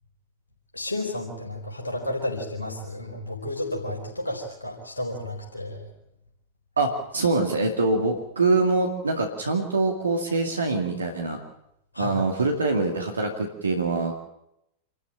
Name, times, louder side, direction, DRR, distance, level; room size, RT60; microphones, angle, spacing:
voice 1, 0.7-5.8 11.9-12.2, left 1 dB, 80° left, -1 dB, 4.4 m, -32 dB
voice 2, 6.8-11.4 12.0-14.1, right 3 dB, 75° right, 3 dB, 2.4 m, -24 dB
27.0 x 13.5 x 8.8 m, 0.82 s
figure-of-eight pair, 90°, 0 cm